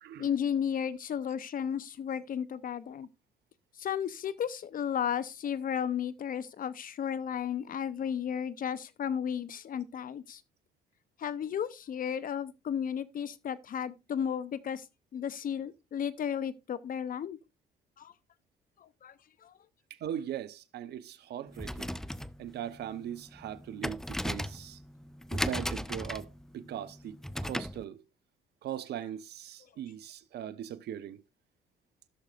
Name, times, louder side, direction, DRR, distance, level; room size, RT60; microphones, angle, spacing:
voice 1, 0.2-3.1 3.8-10.4 11.2-14.9 15.1-17.4 18.0-18.1 18.8-19.1 19.4-19.5, left 8 dB, 50° left, 0.9 m, -34 dB
voice 2, 20.0-22.0 22.4-24.8 25.3-26.3 26.5-27.2 27.4-28.0 28.6-31.2, right 10 dB, 65° right, 0.9 m, -39 dB
sound 1, 21.5-27.8, equal, ahead, 0.5 m, -37 dB
15.0 x 6.5 x 2.5 m
hypercardioid pair, 65°, 19 cm